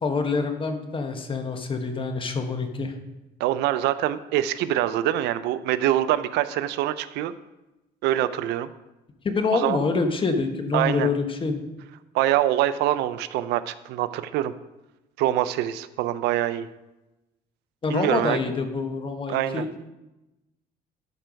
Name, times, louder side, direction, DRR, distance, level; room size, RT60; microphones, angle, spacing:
voice 1, 0.0-2.9 9.2-11.6 17.8-19.6, left 4 dB, 30° left, 6 dB, 1.1 m, -26 dB
voice 2, 3.4-7.3 8.0-8.7 9.5-9.8 10.7-11.1 12.1-14.5 15.2-16.7 17.9-18.4 19.3-19.6, right 13 dB, 85° right, 14 dB, 0.5 m, -24 dB
12.0 x 4.6 x 5.2 m, 1.0 s
cardioid pair, 110°, 17 cm